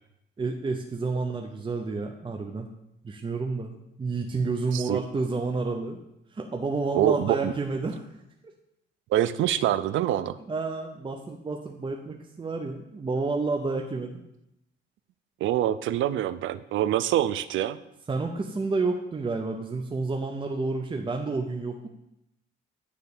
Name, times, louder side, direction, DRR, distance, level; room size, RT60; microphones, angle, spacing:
voice 1, 0.4-2.7 3.0-6.0 6.3-8.1 10.5-14.2 18.1-21.9, right 3 dB, 25° right, 3 dB, 0.7 m, -30 dB
voice 2, 6.9-7.5 9.1-10.4 15.4-17.8, right 12 dB, 75° right, 15 dB, 0.5 m, -25 dB
9.4 x 3.3 x 6.6 m, 0.84 s
cardioid pair, 90°, 20 cm